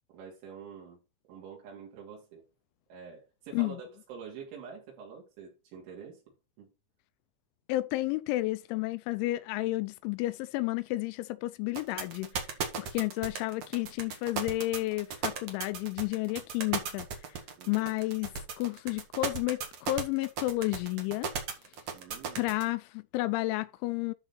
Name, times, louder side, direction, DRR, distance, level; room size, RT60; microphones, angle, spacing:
voice 1, 0.1-1.0 1.3-2.4 2.9-6.2 6.6-6.7 17.6-17.9 21.9-22.6, right 6 dB, 85° right, 5.4 m, -46 dB
voice 2, 7.7-12.5 12.8-17.1 17.7-18.3 18.6-21.3 22.4-24.1, left 18 dB, 90° left, 3.0 m, -31 dB
sound 1, 11.7-22.6, right 6 dB, 55° right, 1.9 m, -35 dB
12.5 x 4.2 x 4.2 m
omnidirectional pair, 5.3 m